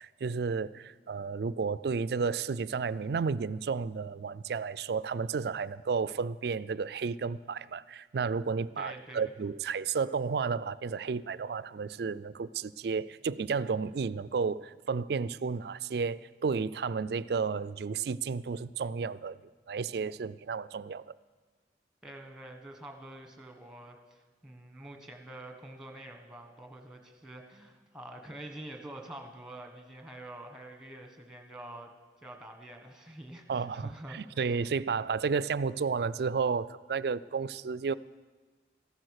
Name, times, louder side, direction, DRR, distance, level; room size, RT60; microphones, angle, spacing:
voice 1, 0.0-19.4 19.7-21.1 33.5-37.9, right 5 dB, 60° right, 17 dB, 0.4 m, -32 dB
voice 2, 8.8-9.3 22.0-31.9 32.2-34.6, right 1 dB, 5° right, 3 dB, 1.4 m, -47 dB
14.5 x 12.0 x 6.5 m, 1.3 s
head